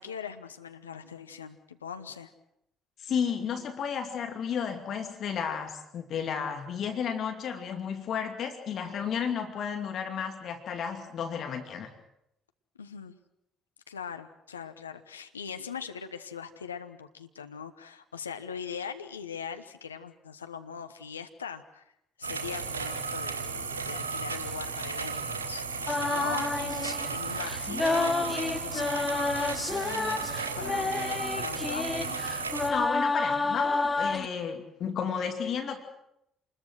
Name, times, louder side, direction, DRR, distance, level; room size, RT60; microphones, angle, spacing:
voice 1, 0.0-2.3 12.8-13.2 13.9-21.8 22.2-30.1 30.6-32.2, left 7 dB, 90° left, 8 dB, 1.0 m, -41 dB
voice 2, 3.0-11.9 32.7-35.8, left 7 dB, 55° left, 5 dB, 2.6 m, -32 dB
sound 1, 22.2-32.7, right 5 dB, 90° right, 2.0 m, -34 dB
sound 2, 25.9-34.3, left 3 dB, 20° left, 1.2 m, -30 dB
27.5 x 21.0 x 6.4 m, 0.79 s
hypercardioid pair, 50°, 0 cm